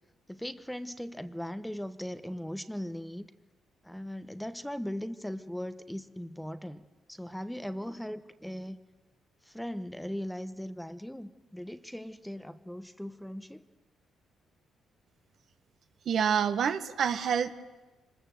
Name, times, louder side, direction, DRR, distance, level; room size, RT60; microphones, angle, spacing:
voice 1, 0.3-3.3 3.8-8.8 9.4-13.6, equal, 5° left, 11 dB, 0.9 m, -39 dB
voice 2, 16.1-17.5, right 7 dB, 60° right, 10 dB, 1.2 m, -27 dB
25.0 x 20.5 x 7.8 m, 1.2 s
cardioid pair, 90°, 0 cm